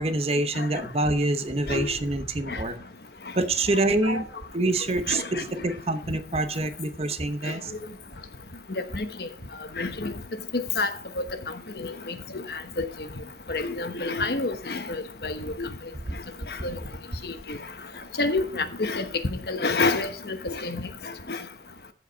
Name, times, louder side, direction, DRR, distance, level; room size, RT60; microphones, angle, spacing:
voice 1, 0.0-2.8 3.4-4.3 4.5-7.7 16.1-16.2, right 2 dB, 35° right, 0.9 m, -26 dB
voice 2, 5.1-5.4 8.9-9.1 9.8-10.1 10.5-10.9 11.8-12.1 12.5-12.9 13.5-15.7 16.6-16.8 17.2-17.6 18.2-19.1 19.5-20.9 21.3-21.4, left 3 dB, 60° left, 1.1 m, -28 dB
15.0 x 5.0 x 5.1 m
head